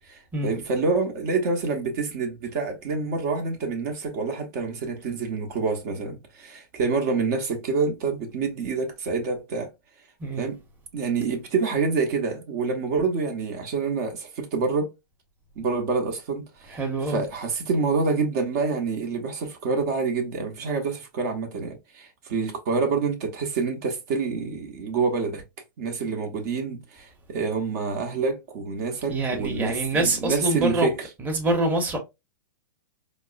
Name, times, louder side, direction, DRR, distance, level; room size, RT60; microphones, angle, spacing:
voice 1, 0.1-9.7 10.4-10.6 10.9-14.9 15.6-16.8 17.1-25.4 25.8-31.1, right 4 dB, 50° right, 0.8 m, -27 dB
voice 2, 16.7-17.2 29.1-30.9 31.2-32.0, right 2 dB, 15° right, 0.9 m, -25 dB
4.4 x 2.0 x 2.4 m
hypercardioid pair, 115°, 11 cm